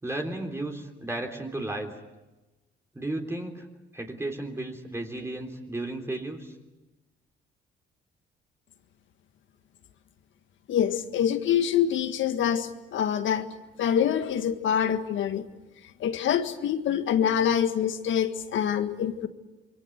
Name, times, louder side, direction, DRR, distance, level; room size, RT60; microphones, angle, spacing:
voice 1, 0.0-1.9 2.9-3.7 3.9-6.5, right 2 dB, 15° right, 3.4 m, -34 dB
voice 2, 10.7-13.5 13.8-15.5 16.0-19.3, left 9 dB, 75° left, 1.7 m, -25 dB
28.0 x 23.0 x 8.0 m
cardioid pair, 90°, 20 cm